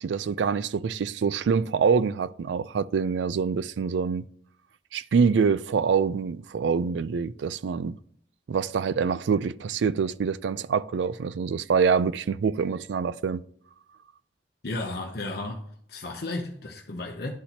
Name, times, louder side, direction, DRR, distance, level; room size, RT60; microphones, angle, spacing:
voice 1, 0.0-4.2 4.9-8.0 8.5-13.4, right 5 dB, 80° right, 0.4 m, -25 dB
voice 2, 14.6-15.6 15.9-17.3, left 2 dB, 60° left, 0.8 m, -33 dB
11.5 x 4.2 x 2.8 m
head